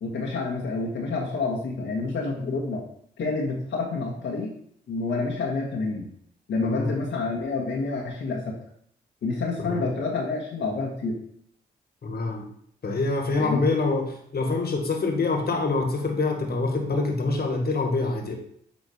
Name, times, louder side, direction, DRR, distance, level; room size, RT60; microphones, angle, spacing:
voice 1, 0.0-2.8 3.2-4.5 4.9-6.1 6.5-8.5 9.2-11.2 13.4-13.6, left 3 dB, 70° left, -2 dB, 1.4 m, -28 dB
voice 2, 6.6-6.9 9.6-9.9 12.0-12.5 12.8-18.4, left 3 dB, 50° left, 3 dB, 1.7 m, -25 dB
8.6 x 3.1 x 4.4 m, 0.66 s
supercardioid pair, 40°, 20 cm